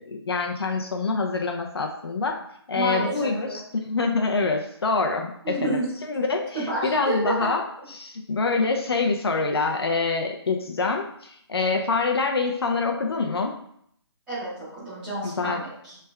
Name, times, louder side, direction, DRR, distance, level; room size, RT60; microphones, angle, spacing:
voice 1, 0.0-2.4 2.7-5.8 6.1-6.6 6.8-7.6 7.9-13.5 15.2-15.6, left 4 dB, 60° left, 3 dB, 0.6 m, -25 dB
voice 2, 2.7-3.6 5.4-5.9 6.5-7.5 14.3-16.0, right 2 dB, 5° right, -13 dB, 1.4 m, -29 dB
3.3 x 3.3 x 3.3 m, 0.70 s
hypercardioid pair, 175°, 14 cm